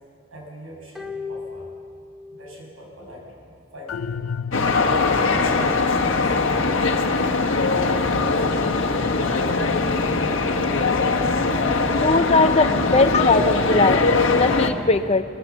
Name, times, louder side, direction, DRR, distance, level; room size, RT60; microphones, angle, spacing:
voice 1, 0.3-1.7 2.3-4.3 12.7-12.8, equal, 80° right, -1 dB, 6.6 m, -42 dB
sound 1, 1.0-2.6 2.9-3.0, left 4 dB, ahead, 1.2 m, -36 dB
sound 2, 3.9-5.4, left 6 dB, 80° left, 0.5 m, -31 dB
sound 3, 4.5-14.7, left 3 dB, 65° left, 1.4 m, -21 dB
voice 2, 11.9-12.7 12.9-14.0 14.3-15.2, left 3 dB, 30° left, 10 dB, 0.6 m, -19 dB
22.5 x 18.0 x 7.2 m, 2.5 s
head